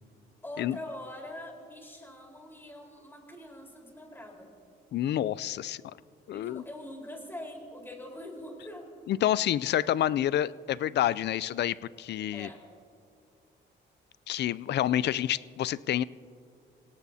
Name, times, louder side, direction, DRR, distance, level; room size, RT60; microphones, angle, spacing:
voice 1, 0.4-4.5 6.3-8.9 12.3-12.6, left 1 dB, 10° left, -1 dB, 4.3 m, -43 dB
voice 2, 4.9-5.9 6.3-6.6 9.1-12.5 14.3-16.0, left 12 dB, 60° left, 19 dB, 0.4 m, -28 dB
26.0 x 17.5 x 2.8 m, 2.3 s
cardioid pair, 90°, 20 cm